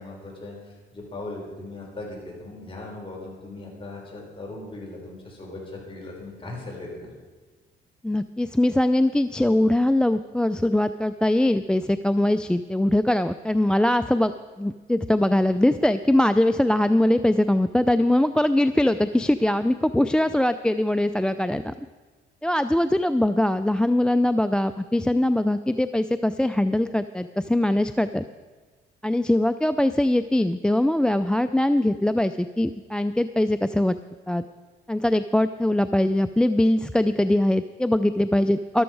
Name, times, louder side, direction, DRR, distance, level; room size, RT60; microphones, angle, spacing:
voice 1, 0.0-7.1, left 2 dB, 25° left, -2 dB, 5.1 m, -38 dB
voice 2, 8.0-21.7 22.4-28.2 29.0-34.0 34.3-34.4 34.9-38.8, left 1 dB, 5° left, 12 dB, 0.3 m, -22 dB
13.5 x 13.0 x 4.7 m, 1.4 s
cardioid pair, 90°, 20 cm